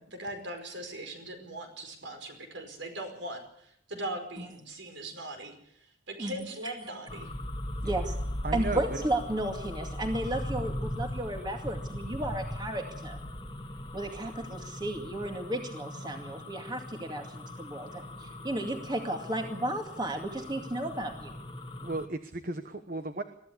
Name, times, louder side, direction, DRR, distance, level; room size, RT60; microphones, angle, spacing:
voice 1, 0.0-5.5 6.1-7.3, right 1 dB, 70° right, 6 dB, 5.0 m, -40 dB
voice 2, 6.2-6.7 7.8-8.1 8.5-13.2 13.9-21.3, right 1 dB, 20° right, 4 dB, 2.3 m, -34 dB
sound 1, 7.1-22.1, left 1 dB, 25° left, 1.7 m, -39 dB
voice 3, 8.4-8.8 21.8-23.2, right 2 dB, 45° right, 9 dB, 1.1 m, -34 dB
22.5 x 14.5 x 8.5 m, 0.72 s
head